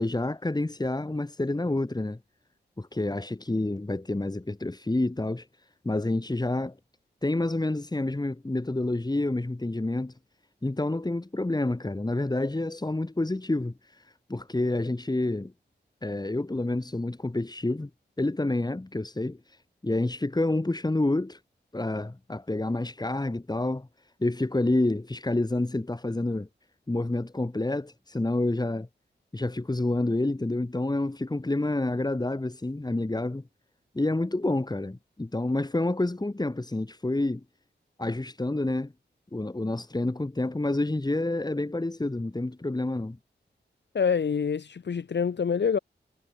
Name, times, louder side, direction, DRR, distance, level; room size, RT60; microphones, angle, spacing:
voice 1, 0.0-2.2 2.8-5.5 5.8-6.8 7.2-10.1 10.6-15.5 16.0-17.9 18.2-19.6 19.8-21.4 21.7-23.9 24.2-26.5 26.9-28.9 29.3-33.4 33.9-37.4 38.0-38.9 39.3-43.2, left 2 dB, 20° left, 6.4 m, -28 dB
voice 2, 43.9-45.8, left 6 dB, 70° left, 1.6 m, -26 dB
wide cardioid pair, 100°, 19 cm